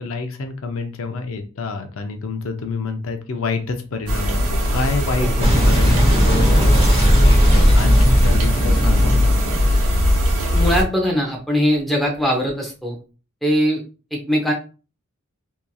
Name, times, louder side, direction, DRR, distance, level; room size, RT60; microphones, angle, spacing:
voice 1, 0.0-9.3, left 3 dB, 65° left, 6 dB, 0.5 m, -27 dB
sound 1, 4.1-10.8, left 1 dB, 90° right, 0.8 m, -20 dB
Boom, 5.4-10.6, equal, 25° right, 0.9 m, -16 dB
voice 2, 10.5-13.0 13.4-13.8 14.1-14.5, equal, ahead, -1 dB, 0.6 m, -20 dB
2.9 x 2.4 x 2.3 m, 0.34 s
head